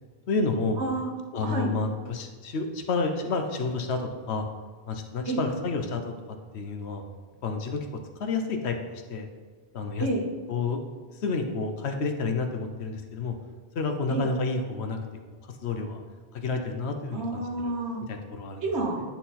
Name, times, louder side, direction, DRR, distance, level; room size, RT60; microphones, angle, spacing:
voice 1, 0.3-0.8 1.3-4.5 4.9-7.0 7.4-7.9 8.2-8.8 9.1-9.3 9.7-10.1 10.5-10.8 11.2-13.4 13.7-15.0 15.3-16.0 16.3-17.7 18.1-18.6, left 4 dB, 70° left, 5 dB, 1.0 m, -30 dB
voice 2, 0.8-1.1 1.4-1.7 5.3-5.4 10.0-10.3 14.1-14.3 17.1-18.0 18.6-19.0, right 2 dB, 70° right, 1 dB, 1.4 m, -29 dB
10.5 x 3.9 x 4.1 m, 1.4 s
omnidirectional pair, 1.2 m